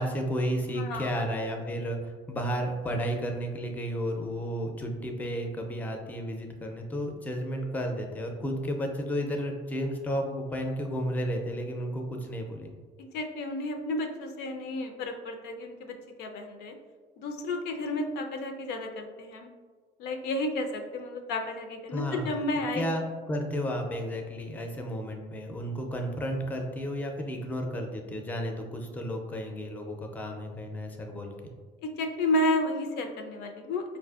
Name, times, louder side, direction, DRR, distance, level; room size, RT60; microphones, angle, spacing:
voice 1, 0.0-12.8 21.9-22.3 22.7-31.3, equal, 10° left, 3 dB, 0.4 m, -32 dB
voice 2, 0.8-1.2 13.0-16.7 17.2-19.5 20.0-22.9 31.8-33.8, left 1 dB, 75° left, 5 dB, 0.4 m, -32 dB
4.2 x 2.5 x 2.3 m, 1.5 s
cardioid pair, 110°, 17 cm